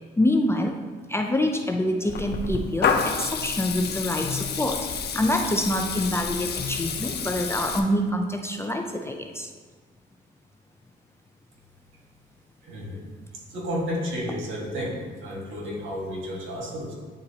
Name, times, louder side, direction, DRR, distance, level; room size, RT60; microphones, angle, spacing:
voice 1, 0.2-0.8 1.1-9.5, left 1 dB, 15° left, 4 dB, 0.4 m, -26 dB
Water tap faucet / Liquid, 2.1-7.8, left 6 dB, 55° left, 0.6 m, -29 dB
voice 2, 12.6-13.0 13.5-16.9, equal, 80° right, -2 dB, 1.7 m, -32 dB
9.5 x 3.8 x 2.8 m, 1.4 s
cardioid pair, 90°, 20 cm